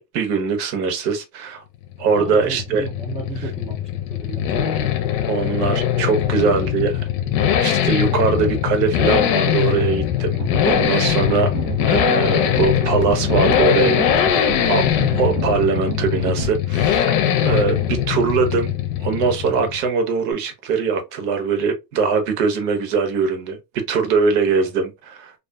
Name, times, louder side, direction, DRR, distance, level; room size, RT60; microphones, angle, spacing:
voice 1, 0.0-1.6 2.0-2.9 5.3-7.1 7.6-10.4 10.6-11.5 11.9-14.9 15.1-17.1 17.4-18.7 19.0-25.3, right 5 dB, 70° right, 1.0 m, -21 dB
sound 1, 1.8-19.9, left 10 dB, 55° left, 0.6 m, -21 dB
voice 2, 2.2-5.0 6.2-6.8 7.2-7.5, right 2 dB, 15° right, 0.4 m, -34 dB
sound 2, 10.4-16.5, right 10 dB, 90° right, 0.6 m, -30 dB
2.4 x 2.4 x 2.2 m
supercardioid pair, 140°, 50 cm